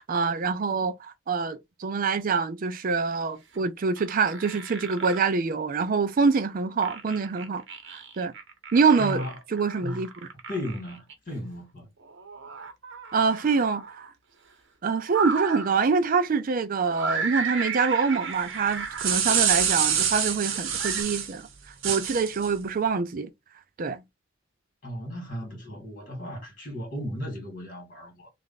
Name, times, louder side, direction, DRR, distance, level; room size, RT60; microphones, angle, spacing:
voice 1, 0.0-8.3 8.7-10.1 13.1-14.1 14.8-21.5 21.8-23.3 23.8-24.0, right 5 dB, 45° right, 0.4 m, -25 dB
sound 1, 3.5-3.6 4.0-5.3 6.4-11.1 12.0-14.1 15.0-15.8 16.9-19.2 20.5-21.0, right 5 dB, 60° right, 1.0 m, -35 dB
voice 2, 9.0-9.3 9.8-10.0 10.5-11.9 24.8-28.3, left 1 dB, 45° left, 2.1 m, -35 dB
sound 2, 18.7-21.3 21.8-22.5, right 8 dB, 85° right, 1.0 m, -25 dB
3.2 x 2.5 x 3.9 m
head